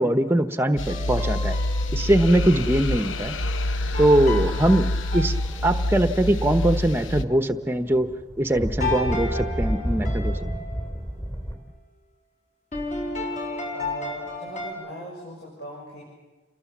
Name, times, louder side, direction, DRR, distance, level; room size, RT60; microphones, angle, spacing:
voice 1, 0.0-1.5 1.9-3.4 4.0-5.3 5.6-8.1 8.4-10.4, right 1 dB, 10° right, 9 dB, 1.0 m, -21 dB
sound 1, 0.8-7.3, left 1 dB, 90° left, 1.0 m, -26 dB
sound 2, 0.8-2.3 3.9-6.1 8.8-10.8 12.7-14.7, left 2 dB, 40° left, 4.8 m, -33 dB
sound 3, 5.3-6.4 6.8-11.6, equal, 20° left, 2.8 m, -31 dB
voice 2, 13.7-16.0, right 1 dB, 55° left, -3 dB, 6.3 m, -39 dB
28.5 x 21.5 x 7.4 m, 1.3 s
head